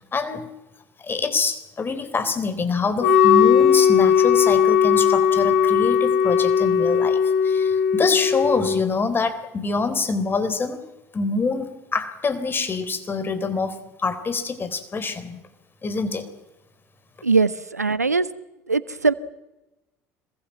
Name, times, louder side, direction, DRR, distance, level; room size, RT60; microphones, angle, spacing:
voice 1, 1.0-10.8 11.1-15.4 15.8-16.3, left 4 dB, 25° left, 10 dB, 3.9 m, -25 dB
Wind instrument woodwind instrument, 3.0-8.9, left 7 dB, 60° left, 4.3 m, -18 dB
voice 2, 17.2-18.3 18.7-19.1, right 4 dB, 85° right, 18 dB, 0.9 m, -20 dB
26.5 x 21.0 x 7.7 m, 0.97 s
figure-of-eight pair, 60°, 8 cm